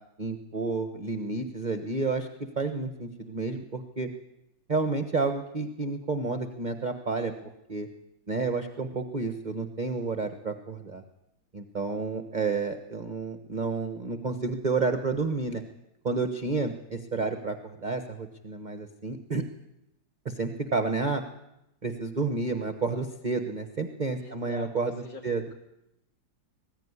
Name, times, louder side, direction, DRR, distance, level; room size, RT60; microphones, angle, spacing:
voice 1, 0.2-2.3 2.6-4.1 4.7-7.3 7.7-7.9 8.3-11.0 11.5-15.6 16.0-19.4 20.2-21.2 21.8-24.9 25.2-25.4, right 4 dB, 30° right, 7 dB, 1.0 m, -30 dB
voice 2, 24.2-25.5, left 3 dB, 65° left, 3 dB, 3.5 m, -45 dB
20.5 x 15.0 x 9.7 m, 0.88 s
omnidirectional pair, 2.0 m